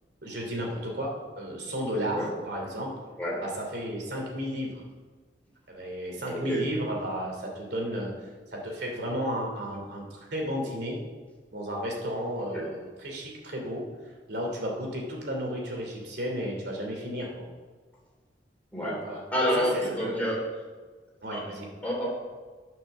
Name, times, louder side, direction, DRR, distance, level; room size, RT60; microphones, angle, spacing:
voice 1, 0.2-2.9 3.4-4.8 5.7-8.1 8.5-11.0 11.5-13.8 14.3-17.3 18.8-19.2 19.6-19.7 20.0-20.3 21.2-21.7, equal, 65° right, 0 dB, 2.8 m, -33 dB
voice 2, 6.3-6.6 12.5-12.7 18.7-19.0 19.3-20.4 21.3-21.4 21.8-22.1, equal, 10° left, -4 dB, 3.3 m, -28 dB
9.1 x 6.3 x 6.9 m, 1.4 s
head